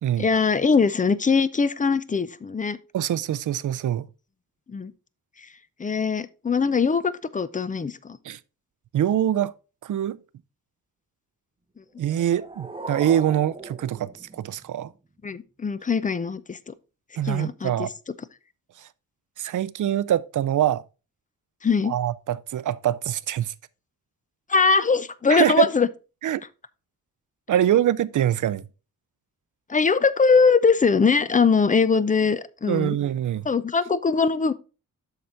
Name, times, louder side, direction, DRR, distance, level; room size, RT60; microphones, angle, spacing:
voice 1, 0.2-2.8 4.7-4.9 5.8-8.2 15.2-16.7 17.2-17.9 21.6-21.9 24.5-25.9 29.7-33.0 33.5-34.5, left 5 dB, 25° left, 0.4 m, -21 dB
voice 2, 2.9-4.1 8.2-8.4 8.9-9.5 9.8-10.2 12.0-14.9 17.2-17.9 19.4-20.8 21.9-23.5 25.3-25.7 26.2-26.4 27.5-28.6 32.7-33.5, right 11 dB, 65° right, 0.5 m, -24 dB
sound 1, 12.0-15.0, right 2 dB, 15° right, 0.9 m, -39 dB
7.7 x 5.8 x 3.8 m
wide cardioid pair, 140°, 34 cm